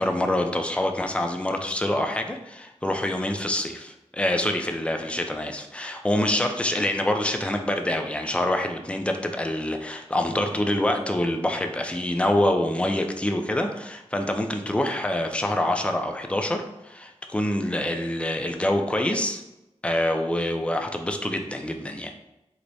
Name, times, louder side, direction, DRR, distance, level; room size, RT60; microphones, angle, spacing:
voice 1, 0.0-19.4 19.8-22.1, left 1 dB, 10° left, 4 dB, 0.4 m, -26 dB
4.6 x 2.0 x 2.6 m, 0.94 s
wide cardioid pair, 50°, 12 cm